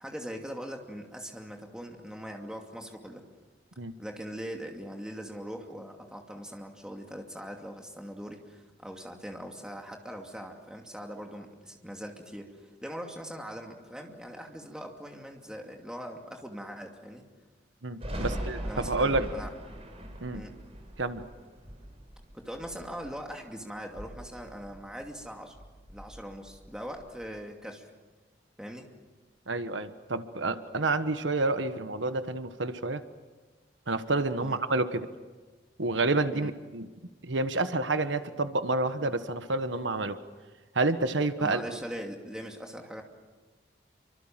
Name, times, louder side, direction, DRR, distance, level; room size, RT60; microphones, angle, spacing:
voice 1, 0.0-3.2 4.0-17.2 18.1-19.5 20.3-20.6 22.3-25.5 25.9-27.9 28.6-28.9 34.4-34.6 36.3-36.6 41.4-43.0, equal, 5° right, 2 dB, 2.6 m, -41 dB
voice 2, 17.8-19.3 20.2-20.4 21.0-21.2 29.5-33.0 33.9-35.1 35.8-36.9 37.2-40.2 40.7-41.6, right 2 dB, 85° right, 10 dB, 1.4 m, -29 dB
Thunder, 18.0-23.5 23.8-25.3 25.5-27.3, right 1 dB, 35° right, 5.0 m, -40 dB
28.0 x 25.0 x 7.6 m, 1.3 s
head